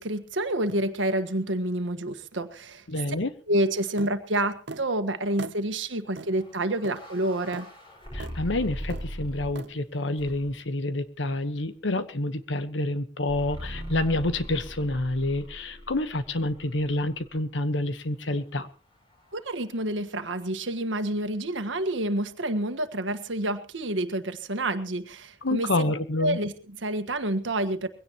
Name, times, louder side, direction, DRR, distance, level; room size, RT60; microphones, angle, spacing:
voice 1, 0.0-2.8 3.5-7.7 19.3-25.7 26.2-27.9, right 1 dB, 85° right, 10 dB, 1.6 m, -28 dB
voice 2, 2.9-3.3 8.1-18.7 25.4-26.4, left 2 dB, 75° left, 11 dB, 1.3 m, -28 dB
sound 1, 4.0-4.2 4.7-4.9 5.4-5.6 6.2-6.3 6.8-7.0 7.5-7.7 8.2-8.4 8.9-9.1 9.5-9.7, right 3 dB, 65° right, 0.8 m, -39 dB
sound 2, 6.4-9.7 10.2-10.7 13.3-17.4, equal, 25° left, 6.1 m, -40 dB
22.0 x 17.0 x 3.1 m, 0.35 s
head